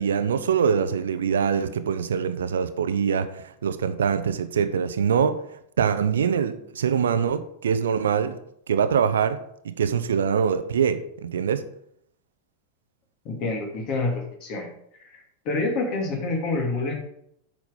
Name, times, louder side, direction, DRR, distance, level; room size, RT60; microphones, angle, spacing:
voice 1, 0.0-5.4 5.8-8.4 8.7-9.4 9.6-11.6, right 7 dB, 65° right, 11 dB, 0.7 m, -24 dB
voice 2, 13.2-14.7 15.0-16.9, left 3 dB, 40° left, 1 dB, 2.8 m, -27 dB
8.3 x 6.1 x 5.4 m, 0.72 s
figure-of-eight pair, 90°, 0 cm